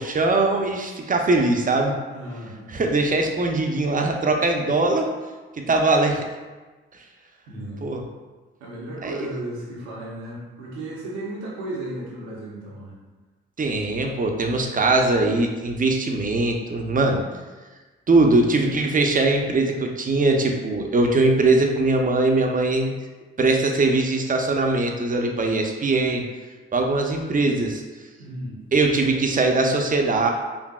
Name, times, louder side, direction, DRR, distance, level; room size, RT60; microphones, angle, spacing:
voice 1, 0.0-1.9 2.7-5.1 5.7-6.2 7.8-8.0 9.0-9.3 13.6-17.2 18.1-22.9 23.4-26.2 26.7-27.8 28.7-30.3, right 2 dB, 30° right, 2 dB, 0.7 m, -21 dB
voice 2, 2.1-2.7 5.6-5.7 7.5-7.9 8.6-13.0 28.2-28.6, right 1 dB, 75° right, -4 dB, 0.9 m, -34 dB
4.9 x 2.6 x 2.3 m, 1.3 s
hypercardioid pair, 40°, 29 cm